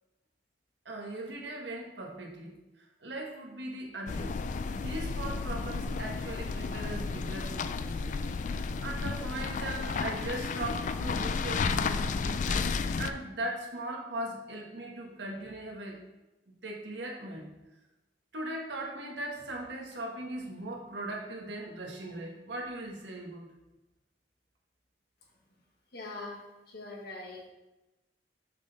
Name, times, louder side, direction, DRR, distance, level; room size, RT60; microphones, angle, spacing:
voice 1, 0.8-4.4 4.6-8.2 8.5-16.0 16.6-17.5 18.3-23.5, right 1 dB, 85° right, 0 dB, 1.4 m, -39 dB
sound 1, 4.1-13.1, left 4 dB, 45° left, 0.3 m, -32 dB
voice 2, 25.9-26.4 26.7-27.5, left 2 dB, 60° left, -1 dB, 1.6 m, -42 dB
6.4 x 5.4 x 4.0 m, 1.0 s
head